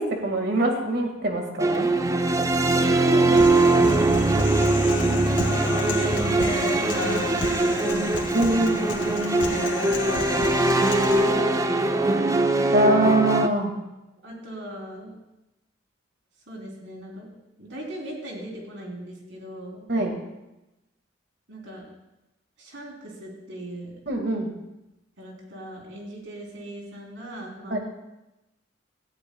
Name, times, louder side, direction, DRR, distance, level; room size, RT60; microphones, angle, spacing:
voice 1, 0.0-1.9 8.3-8.8 12.7-13.7 19.9-20.1 24.1-24.5 27.7-27.8, right 1 dB, 60° right, 2 dB, 2.0 m, -23 dB
sound 1, 1.6-13.5, right 2 dB, 20° right, 0.5 m, -22 dB
voice 2, 3.0-8.1 8.4-8.8 9.2-12.4 14.2-15.1 16.5-17.3 17.6-19.9 21.5-21.9 22.6-24.0 25.2-27.8, right 1 dB, 80° right, -2 dB, 3.7 m, -39 dB
Human voice, 3.3-11.3, left 2 dB, 90° left, 2.1 m, -31 dB
17.5 x 14.0 x 2.3 m, 0.95 s
head